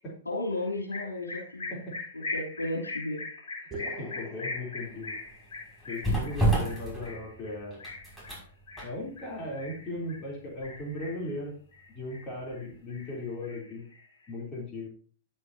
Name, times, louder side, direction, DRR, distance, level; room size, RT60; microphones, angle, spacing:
voice 1, 0.3-1.8 2.1-3.2, left 1 dB, 90° left, -1 dB, 3.6 m, -33 dB
sound 1, 0.9-10.2 10.6-11.3 11.7-12.6 12.9-14.2, left 3 dB, 70° left, 3.7 m, -40 dB
sound 2, 3.7-5.6, right 1 dB, 20° right, 3.1 m, -43 dB
voice 2, 4.0-5.1 5.9-7.8 8.8-11.5 11.9-13.9 14.3-14.9, left 2 dB, 30° left, -2 dB, 3.6 m, -37 dB
sound 3, 4.8-12.7 13.1-13.2, right 1 dB, 10° left, 5.8 m, -33 dB
11.0 x 8.9 x 2.8 m, 0.41 s
figure-of-eight pair, 105°, 0 cm